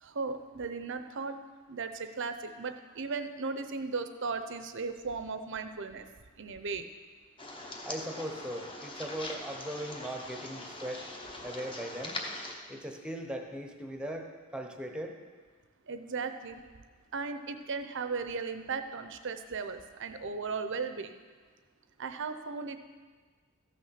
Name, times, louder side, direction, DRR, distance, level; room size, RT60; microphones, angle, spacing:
voice 1, 0.0-1.4 1.7-6.1 6.4-6.9 15.9-16.6 17.1-21.2 22.0-22.8, right 4 dB, 55° right, 9 dB, 0.7 m, -36 dB
sound 1, 7.4-12.5, left 2 dB, 25° left, 1.0 m, -42 dB
voice 2, 7.8-11.1 11.4-12.2 12.7-15.1, right 1 dB, 5° right, 3 dB, 0.9 m, -39 dB
14.0 x 6.3 x 5.8 m, 1.5 s
head